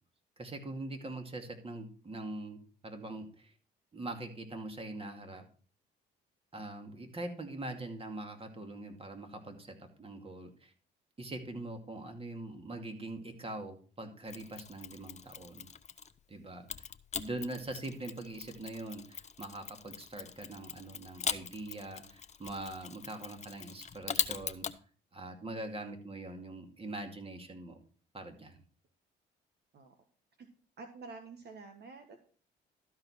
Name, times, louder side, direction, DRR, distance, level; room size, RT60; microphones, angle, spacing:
voice 1, 0.4-3.5 3.9-5.4 6.5-10.7 11.2-15.7 16.3-16.8 17.1-24.7 25.1-27.8 28.1-28.6, right 2 dB, 30° right, 5 dB, 2.3 m, -43 dB
Mechanisms, 14.3-16.2 16.7-24.8, left 7 dB, 35° left, 0.7 m, -41 dB
voice 2, 30.8-32.2, right 4 dB, 55° right, 5 dB, 1.4 m, -49 dB
13.0 x 4.9 x 5.7 m, 0.42 s
supercardioid pair, 65°, 20 cm